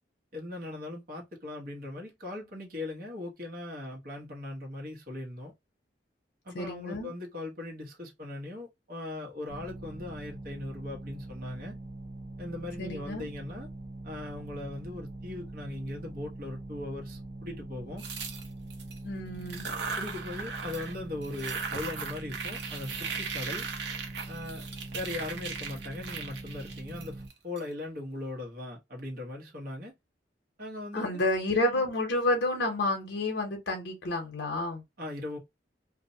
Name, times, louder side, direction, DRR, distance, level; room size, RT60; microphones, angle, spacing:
voice 1, 0.3-5.5 6.4-11.8 12.4-13.7 14.0-18.0 20.0-23.7 24.3-24.7 24.9-29.9 30.6-31.2 35.0-35.4, left 2 dB, 55° right, 1.0 m, -39 dB
voice 2, 6.5-7.1 12.8-13.3 19.0-19.7 30.9-34.8, left 2 dB, 80° left, 0.7 m, -30 dB
sound 1, 9.5-27.3, right 2 dB, 25° right, 0.8 m, -43 dB
sound 2, 18.0-19.0 19.4-21.0 21.2-27.6, right 5 dB, 75° right, 0.7 m, -38 dB
2.5 x 2.1 x 2.6 m
head